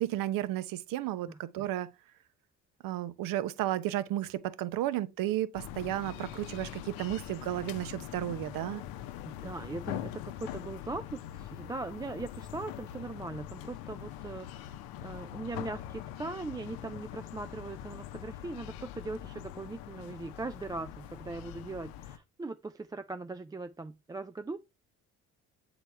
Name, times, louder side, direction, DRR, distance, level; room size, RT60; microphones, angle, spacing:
voice 1, 0.0-1.9 2.8-8.8, right 13 dB, 65° right, 0.8 m, -33 dB
sound 1, 5.5-22.2, left 12 dB, 70° left, 0.7 m, -43 dB
voice 2, 9.2-24.6, right 3 dB, 10° right, 0.3 m, -40 dB
8.0 x 4.1 x 3.2 m
hypercardioid pair, 60°, 36 cm